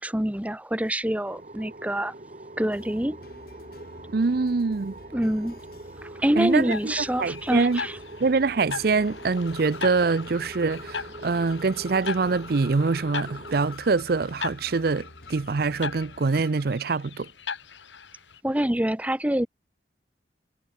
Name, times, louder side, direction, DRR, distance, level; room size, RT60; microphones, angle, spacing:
voice 1, 0.0-2.1 2.6-3.2 5.1-5.5 6.2-7.9 18.4-19.5, right 1 dB, 10° right, 0.9 m, -26 dB
sound 1, 1.2-13.8, right 2 dB, 40° right, 1.9 m, -43 dB
sound 2, 2.7-16.2, left 1 dB, 55° left, 4.0 m, -50 dB
voice 2, 4.1-4.9 6.4-6.9 7.2-7.8 8.2-17.3, right 4 dB, 55° right, 0.5 m, -24 dB
sound 3, 6.5-18.4, left 5 dB, 90° left, 2.3 m, -38 dB
head